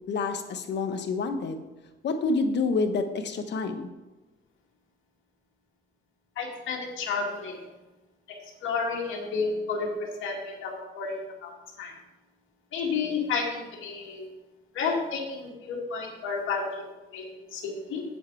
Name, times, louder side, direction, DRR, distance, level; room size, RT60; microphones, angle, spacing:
voice 1, 0.1-1.6 2.0-3.9, left 3 dB, 60° left, 7 dB, 1.1 m, -28 dB
voice 2, 6.4-7.6 8.6-11.5 11.8-11.9 12.7-14.3 14.7-18.0, left 4 dB, 80° left, -1 dB, 2.2 m, -31 dB
8.5 x 7.3 x 4.6 m, 1.1 s
cardioid pair, 90°, 20 cm